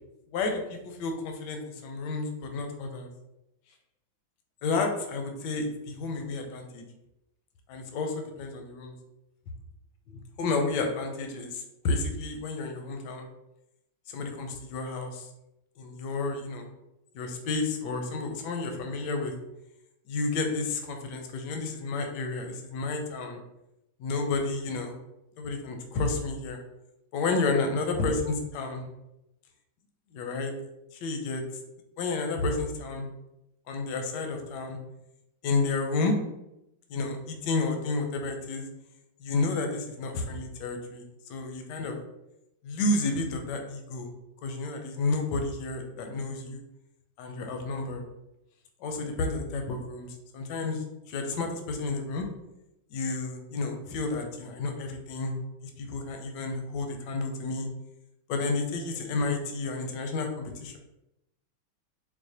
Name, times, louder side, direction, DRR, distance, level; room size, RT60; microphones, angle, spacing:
voice 1, 0.3-3.1 4.6-6.8 7.7-8.9 10.4-13.3 14.1-15.3 15.8-16.7 17.1-19.3 20.1-23.4 24.0-25.0 25.4-26.6 27.1-28.8 30.1-30.5 30.9-31.4 32.0-33.1 33.7-34.8 35.4-36.1 36.9-38.6 39.2-41.0 41.3-42.0 42.6-44.1 44.4-46.6 47.2-48.0 48.8-52.3 52.9-55.3 55.6-57.7 58.3-60.8, left 3 dB, 75° left, 4 dB, 1.1 m, -31 dB
4.7 x 2.1 x 2.7 m, 0.89 s
omnidirectional pair, 2.2 m